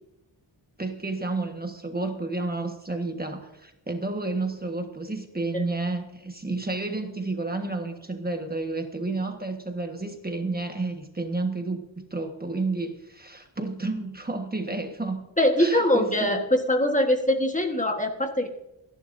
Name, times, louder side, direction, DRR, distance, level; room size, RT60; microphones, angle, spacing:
voice 1, 0.8-15.3 15.6-16.4, right 2 dB, 20° right, 4 dB, 1.4 m, -31 dB
voice 2, 15.4-18.5, left 1 dB, 15° left, 3 dB, 1.4 m, -23 dB
28.5 x 11.0 x 2.6 m, 0.89 s
wide cardioid pair, 135°, 47 cm